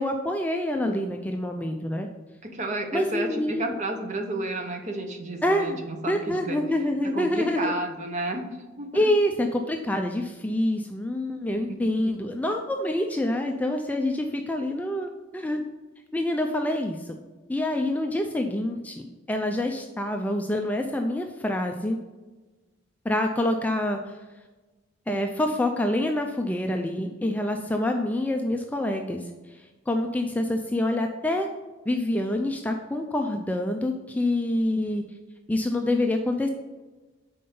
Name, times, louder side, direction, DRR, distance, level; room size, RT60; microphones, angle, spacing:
voice 1, 0.0-2.1 2.9-3.7 5.4-5.8 6.1-7.7 8.9-15.6 16.1-17.1 17.5-19.0 19.3-22.0 23.1-24.2 25.1-29.2 29.9-31.5 31.9-35.0 35.5-36.5, left 1 dB, 10° left, 3 dB, 0.3 m, -26 dB
voice 2, 2.4-6.6 7.0-9.1 11.7-12.2, right 2 dB, 35° right, 5 dB, 0.7 m, -32 dB
5.4 x 4.3 x 5.4 m, 1.2 s
head